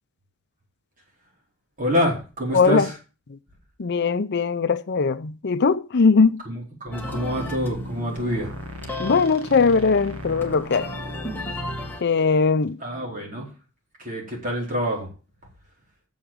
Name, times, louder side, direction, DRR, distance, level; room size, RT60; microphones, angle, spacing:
voice 1, 1.8-2.9 6.4-8.5 12.8-13.5 14.0-15.1, equal, 40° right, 4.4 m, -26 dB
voice 2, 2.5-2.9 3.3-3.4 3.8-6.4 9.0-10.9 12.0-12.8, left 4 dB, 50° left, 0.6 m, -20 dB
sound 1, 6.9-12.0, left 2 dB, 10° left, 1.9 m, -37 dB
sound 2, 6.9-12.0, equal, 75° right, 1.8 m, -36 dB
8.7 x 7.1 x 7.2 m
head